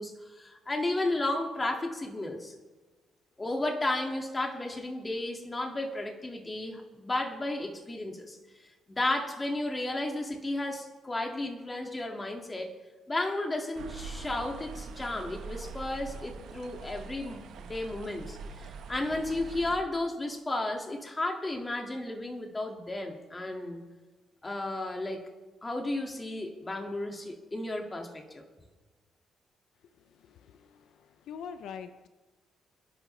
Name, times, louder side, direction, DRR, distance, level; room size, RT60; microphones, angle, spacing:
voice 1, 0.0-2.5 3.4-8.4 8.9-12.7 13.1-23.8 24.4-25.3 25.6-28.4, left 2 dB, 20° left, 3 dB, 2.2 m, -33 dB
sound 1, 13.8-19.8, right 4 dB, 80° right, 1.5 m, -43 dB
voice 2, 30.2-32.1, left 7 dB, 75° left, 10 dB, 0.7 m, -44 dB
25.0 x 11.0 x 3.4 m, 1.3 s
cardioid pair, 90°, 0 cm